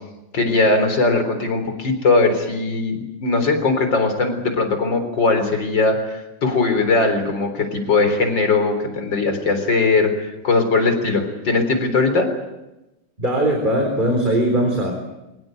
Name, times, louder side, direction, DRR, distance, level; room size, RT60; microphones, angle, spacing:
voice 1, 0.3-12.3, left 3 dB, 90° left, 7 dB, 4.6 m, -19 dB
voice 2, 13.2-14.9, right 1 dB, 25° right, 2 dB, 4.3 m, -19 dB
23.5 x 19.5 x 9.3 m, 0.96 s
omnidirectional pair, 1.9 m